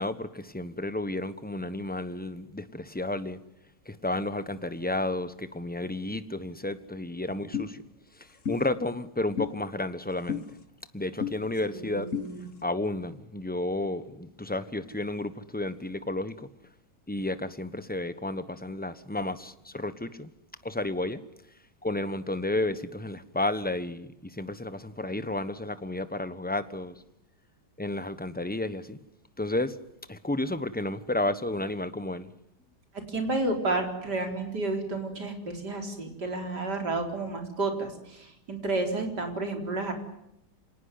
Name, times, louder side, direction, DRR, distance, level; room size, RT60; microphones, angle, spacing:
voice 1, 0.0-3.4 3.8-7.8 8.2-10.4 10.9-12.1 12.6-16.5 17.1-20.3 20.6-21.2 21.8-26.9 27.8-29.0 29.4-29.8 30.1-32.3, left 2 dB, 5° left, 1.0 m, -32 dB
sound 1, 7.5-7.7 8.4-8.6 9.4-9.5 10.3-10.4 11.2-11.3 12.1-12.3, left 7 dB, 50° left, 2.0 m, -30 dB
voice 2, 11.7-12.4 33.1-39.9, right 2 dB, 80° right, 4.7 m, -31 dB
26.5 x 19.0 x 9.7 m
omnidirectional pair, 1.8 m